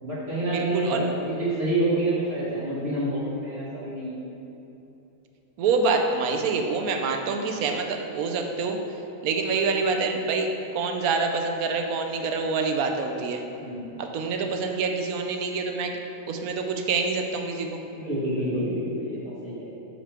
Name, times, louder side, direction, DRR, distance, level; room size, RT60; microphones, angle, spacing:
voice 1, 0.0-4.2 13.6-14.0 17.9-19.7, right 1 dB, 45° right, -9 dB, 1.5 m, -28 dB
voice 2, 0.5-1.0 5.6-8.8 9.2-10.5 10.7-13.4 14.0-16.0 16.3-17.8, right 4 dB, 75° right, 4 dB, 1.1 m, -26 dB
6.8 x 5.1 x 4.4 m, 2.9 s
omnidirectional pair, 1.6 m